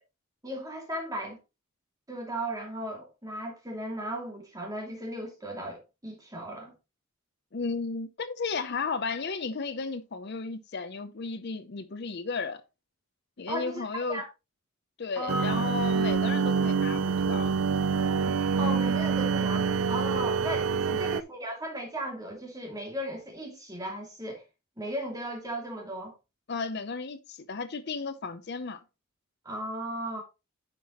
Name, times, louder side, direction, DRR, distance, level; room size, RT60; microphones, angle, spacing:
voice 1, 0.4-1.4 2.1-6.7 13.5-13.8 14.1-14.3 15.2-15.7 18.6-24.4 24.8-26.1 29.4-30.2, right 1 dB, 15° right, 2.6 m, -36 dB
voice 2, 7.5-12.6 13.4-14.2 15.0-17.6 20.9-21.0 26.5-28.8, left 4 dB, 55° left, 0.6 m, -34 dB
sound 1, 15.3-21.2, right 5 dB, 70° right, 0.4 m, -26 dB
9.9 x 5.7 x 3.0 m
head